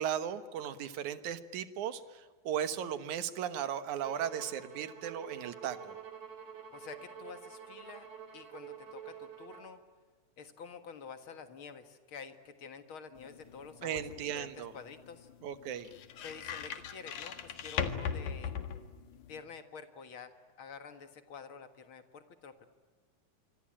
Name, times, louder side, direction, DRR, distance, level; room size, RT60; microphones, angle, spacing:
voice 1, 0.0-6.0 13.8-14.7 15.4-15.9, right 9 dB, 75° right, 11 dB, 2.6 m, -36 dB
Bowed string instrument, 4.0-9.8, right 8 dB, 55° right, 3.8 m, -48 dB
voice 2, 6.7-8.1 8.3-9.8 10.4-15.3 16.2-18.5 19.3-22.7, left 5 dB, 50° left, 8 dB, 2.2 m, -49 dB
sound 1, 13.1-19.4, left 7 dB, 80° left, 3.1 m, -40 dB
25.5 x 25.5 x 8.7 m, 1.5 s
omnidirectional pair, 3.5 m